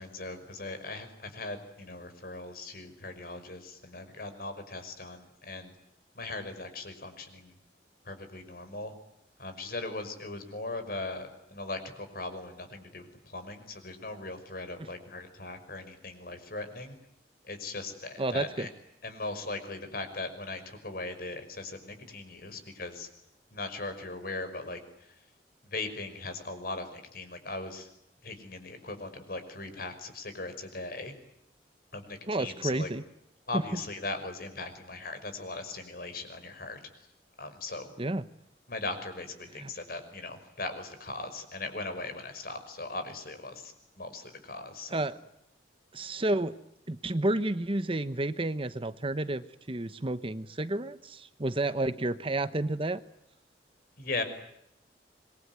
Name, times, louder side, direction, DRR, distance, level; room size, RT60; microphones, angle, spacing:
voice 1, 0.0-5.7 6.1-7.5 8.1-8.9 9.4-17.0 17.4-18.7 19.0-23.1 23.5-24.8 25.6-27.9 28.2-31.1 31.9-32.9 33.5-36.8 37.4-37.9 38.7-45.0 54.0-54.2, left 2 dB, 55° left, 9 dB, 5.6 m, -39 dB
voice 2, 18.2-18.7 32.3-33.0 33.5-33.8 38.0-38.2 39.6-39.7 44.9-45.2 45.9-46.6 46.9-53.0, right 2 dB, 30° right, 13 dB, 1.0 m, -31 dB
27.0 x 23.0 x 9.5 m, 0.81 s
head